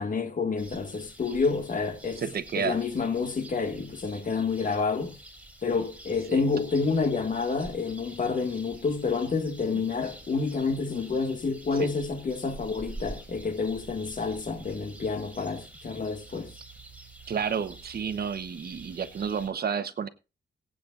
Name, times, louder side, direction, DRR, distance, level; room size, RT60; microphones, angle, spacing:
voice 1, 0.0-2.2 2.6-5.2 5.6-16.6, left 4 dB, 50° left, 1.9 m, -29 dB
sound 1, 0.6-19.5, right 2 dB, 5° right, 4.8 m, -47 dB
voice 2, 2.2-2.8 6.3-6.4 9.7-9.8 11.8-11.9 17.3-20.1, right 7 dB, 60° right, 1.0 m, -31 dB
22.5 x 8.7 x 2.5 m
wide cardioid pair, 120°, 18 cm